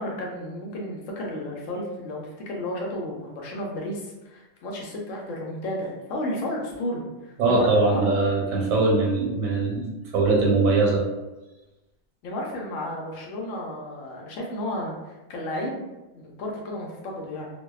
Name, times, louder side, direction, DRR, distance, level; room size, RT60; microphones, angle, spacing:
voice 1, 0.0-8.1 12.2-15.8 16.1-17.5, left 1 dB, 75° left, -1 dB, 0.9 m, -32 dB
voice 2, 7.4-11.0, right 3 dB, 90° right, -3 dB, 1.1 m, -21 dB
2.6 x 2.1 x 2.3 m, 1.1 s
omnidirectional pair, 1.4 m